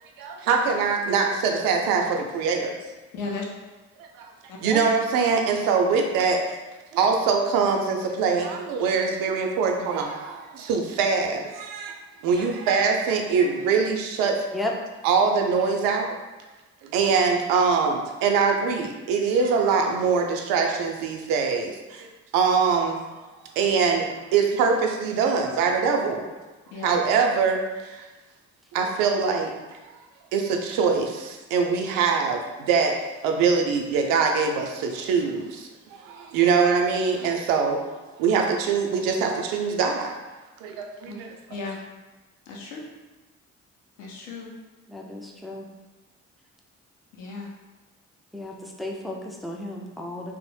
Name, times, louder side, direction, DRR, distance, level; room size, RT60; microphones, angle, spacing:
voice 1, 0.2-2.8 4.0-4.3 4.6-6.4 6.9-12.0 12.2-14.4 15.0-16.2 16.8-22.1 22.3-23.0 23.6-24.1 24.3-26.3 26.8-28.1 28.7-29.5 30.3-33.0 33.2-37.8 38.2-40.1 40.6-41.3, right 5 dB, 65° right, 3 dB, 0.5 m, -23 dB
voice 2, 3.1-3.5 4.5-4.6 12.3-12.4 26.7-27.0 41.1-41.2 41.5-41.8 42.5-42.9 44.0-44.5 47.1-47.5, left 3 dB, 80° left, -2 dB, 0.6 m, -35 dB
voice 3, 44.9-45.7 48.3-50.4, left 1 dB, ahead, -1 dB, 0.3 m, -33 dB
2.5 x 2.0 x 3.2 m, 1.2 s
figure-of-eight pair, 40°, 37 cm